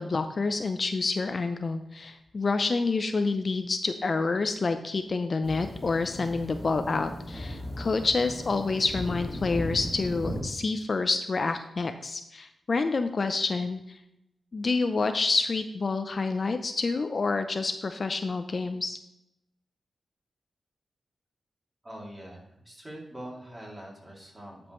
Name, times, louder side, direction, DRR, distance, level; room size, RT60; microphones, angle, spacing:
voice 1, 0.0-14.0 14.5-19.0, left 3 dB, 50° left, 8 dB, 0.5 m, -28 dB
sound 1, 5.4-10.4, left 1 dB, 25° left, 2.4 m, -37 dB
voice 2, 21.8-24.7, right 1 dB, 20° right, -3 dB, 2.7 m, -44 dB
10.5 x 5.2 x 3.1 m, 0.82 s
cardioid pair, 70°, 0 cm